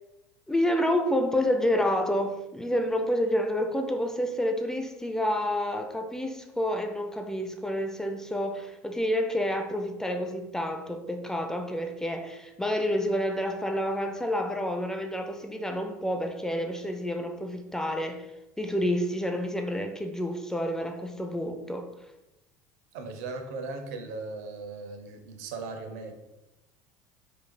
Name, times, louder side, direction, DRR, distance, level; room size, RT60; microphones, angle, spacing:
voice 1, 0.5-18.3 18.6-21.9, equal, 5° left, 0.4 m, -29 dB
voice 2, 22.9-26.1, right 3 dB, 75° right, 0.7 m, -38 dB
4.6 x 3.3 x 2.2 m
supercardioid pair, 95°, 8 cm